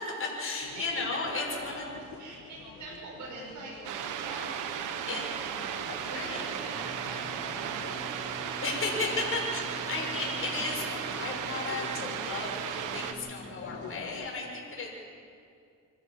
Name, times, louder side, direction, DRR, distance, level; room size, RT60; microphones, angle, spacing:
voice 1, 0.1-1.8 5.1-5.2 6.1-6.5 8.6-11.9 12.2-14.9, left 3 dB, 45° left, -2 dB, 6.8 m, -34 dB
sound 1, 0.6-14.3, left 6 dB, 75° left, 2.1 m, -47 dB
voice 2, 0.7-4.5 5.1-5.5 6.1-8.6 9.0-9.2, right 3 dB, 70° right, -5 dB, 6.6 m, -44 dB
sound 2, 3.8-13.1, right 9 dB, 90° right, 1.3 m, -35 dB
Singing, 6.7-14.0, left 2 dB, 20° left, 1.2 m, -48 dB
26.5 x 14.0 x 7.4 m, 2.4 s
cardioid pair, 90°, 30 cm